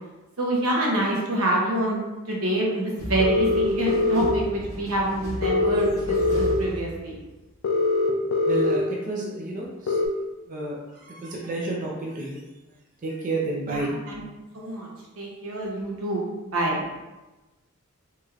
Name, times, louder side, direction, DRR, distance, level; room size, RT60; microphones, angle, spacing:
voice 1, 0.4-7.2 13.7-14.2 14.5-16.8, right 1 dB, 80° right, -2 dB, 0.8 m, -27 dB
sound 1, 3.0-7.4, equal, 15° right, 1.1 m, -35 dB
sound 2, 3.2-4.3 5.4-6.6 7.6-8.8 9.9-10.1, left 3 dB, 75° left, 0.4 m, -22 dB
voice 2, 8.5-10.0 10.5-12.4 13.0-13.9, right 2 dB, 40° right, -3 dB, 0.4 m, -30 dB
3.0 x 2.9 x 2.4 m, 1.1 s
head